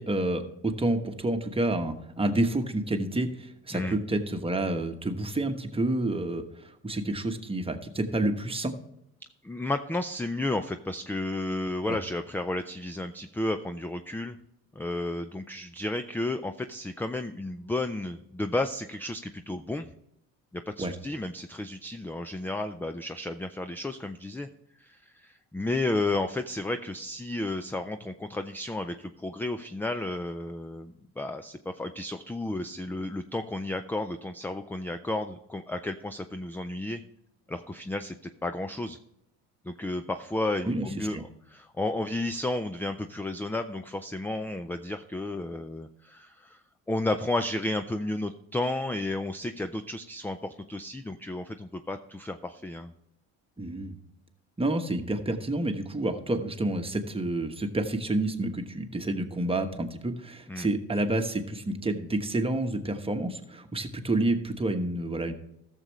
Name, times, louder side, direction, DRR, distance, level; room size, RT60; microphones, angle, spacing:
voice 1, 0.0-8.7 11.9-12.0 20.8-20.9 40.6-41.2 53.6-54.0 54.6-65.3, right 1 dB, 15° right, 6 dB, 1.2 m, -29 dB
voice 2, 9.4-14.4 14.8-19.9 20.5-24.5 24.8-37.0 37.5-38.2 38.4-39.0 39.6-41.2 41.5-46.6 46.9-52.9 60.5-60.7, left 2 dB, 5° left, 9 dB, 0.4 m, -32 dB
14.0 x 6.8 x 3.1 m, 0.81 s
supercardioid pair, 75°, 38 cm